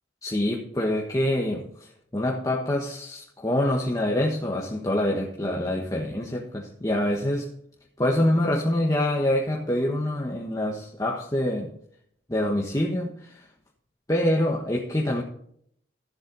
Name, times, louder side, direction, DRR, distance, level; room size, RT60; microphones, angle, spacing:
voice 1, 0.2-7.5 8.0-11.7 12.3-13.4 14.1-15.2, left 1 dB, 20° left, -1 dB, 1.4 m, -26 dB
13.5 x 7.6 x 4.0 m, 0.66 s
head